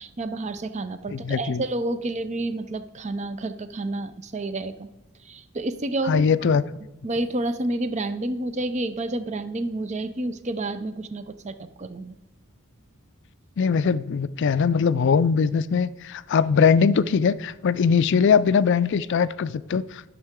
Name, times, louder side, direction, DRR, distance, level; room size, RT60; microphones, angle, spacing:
voice 1, 0.0-4.9 5.2-6.3 7.0-12.1, right 2 dB, 30° right, 11 dB, 0.5 m, -29 dB
voice 2, 1.1-1.6 6.1-6.6 13.6-20.1, left 6 dB, 55° left, 16 dB, 0.4 m, -21 dB
12.0 x 6.5 x 3.6 m, 1.0 s
head